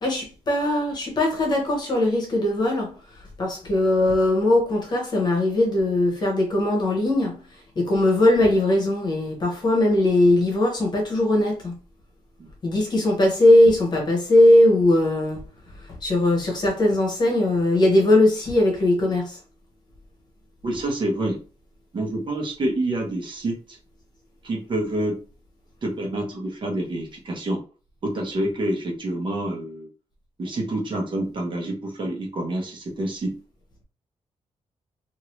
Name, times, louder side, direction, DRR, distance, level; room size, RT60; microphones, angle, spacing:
voice 1, 0.0-2.9 3.4-7.4 7.8-11.7 12.6-15.4 16.0-19.4, left 1 dB, 40° left, 1.0 m, -20 dB
voice 2, 20.6-21.4 21.9-23.8 24.4-25.2 25.8-27.6 28.0-29.9 30.4-33.4, right 1 dB, 45° right, 1.1 m, -27 dB
2.8 x 2.6 x 3.1 m
wide cardioid pair, 175°, 12 cm